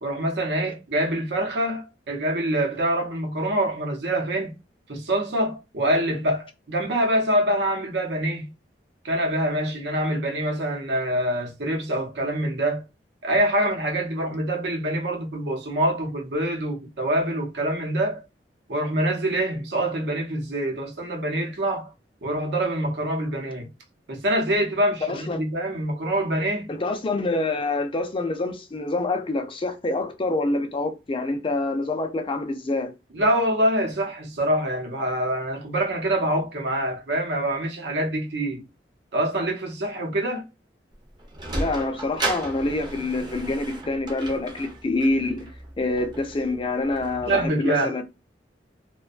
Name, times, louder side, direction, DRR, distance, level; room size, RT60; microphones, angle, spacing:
voice 1, 0.0-4.5 4.9-8.5 9.0-12.8 13.2-18.2 18.7-21.9 22.2-23.7 24.1-26.7 33.1-38.6 39.1-40.5 47.3-48.0, right 1 dB, 75° right, 0.7 m, -25 dB
voice 2, 25.1-25.4 26.7-32.9 41.5-45.5 45.8-48.1, left 2 dB, 30° left, 0.4 m, -26 dB
Sliding door, 40.9-47.5, right 2 dB, 25° right, 0.5 m, -35 dB
2.5 x 2.2 x 2.3 m
head